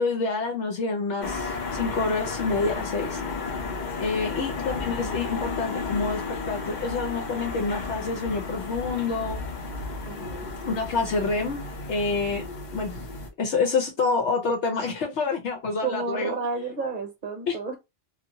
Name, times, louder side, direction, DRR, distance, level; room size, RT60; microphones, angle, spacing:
voice 1, 0.0-3.2 4.0-9.4 10.7-11.6 11.9-12.5 12.7-13.0 13.4-16.3 17.5-17.6, left 4 dB, 70° left, 1.0 m, -27 dB
sound 1, 1.2-13.3, left 3 dB, 45° left, 0.7 m, -33 dB
voice 2, 10.1-10.5 15.0-15.4 15.8-17.8, right 4 dB, 45° right, 0.9 m, -32 dB
2.6 x 2.4 x 2.7 m
omnidirectional pair, 1.2 m